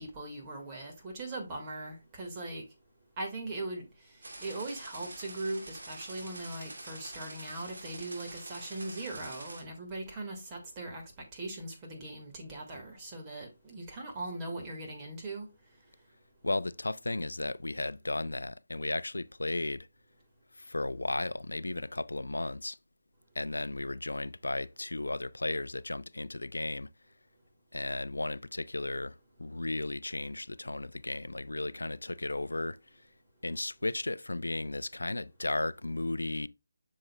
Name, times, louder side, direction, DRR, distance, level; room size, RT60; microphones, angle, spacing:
voice 1, 0.0-2.6 3.2-3.9 4.4-11.0 11.3-15.5, right 2 dB, 20° right, 1.8 m, -40 dB
sound 1, 4.2-9.6, right 2 dB, 65° right, 2.4 m, -46 dB
voice 2, 16.4-19.9 20.6-22.8 23.4-26.9 27.7-32.8 33.4-36.5, left 2 dB, 85° left, 0.4 m, -34 dB
7.6 x 6.4 x 2.2 m
figure-of-eight pair, 160°, 0 cm